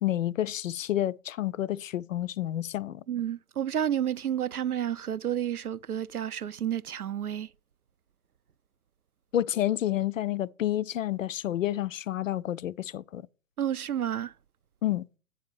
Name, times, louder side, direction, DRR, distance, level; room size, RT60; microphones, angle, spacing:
voice 1, 0.0-3.0 9.3-13.2 14.8-15.0, left 12 dB, 65° left, 0.5 m, -29 dB
voice 2, 3.1-7.5 13.6-14.3, right 10 dB, 85° right, 0.6 m, -30 dB
8.6 x 4.2 x 6.8 m
figure-of-eight pair, 125°, 43 cm